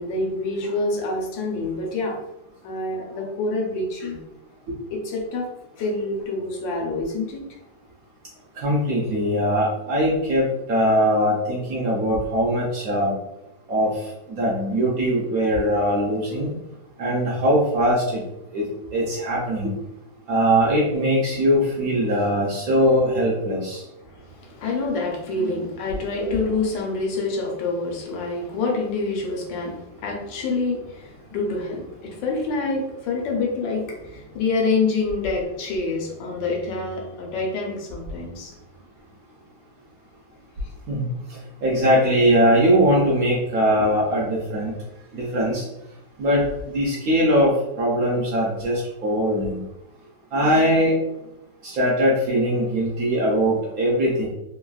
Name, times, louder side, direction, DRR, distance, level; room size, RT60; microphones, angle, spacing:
voice 1, 0.0-2.2 2.6-4.2 4.9-5.5 5.8-7.4 24.6-38.5 43.8-43.9, left 3 dB, 85° left, 0 dB, 1.4 m, -26 dB
voice 2, 8.6-13.1 13.7-13.9 14.3-16.5 17.0-18.2 18.5-18.7 18.9-19.7 20.3-23.8 40.9-41.1 41.6-44.7 45.1-45.6 46.2-47.5 47.8-49.6 50.3-50.9 51.6-54.3, equal, 70° right, -4 dB, 0.9 m, -21 dB
3.3 x 2.3 x 2.3 m, 0.92 s
omnidirectional pair, 2.0 m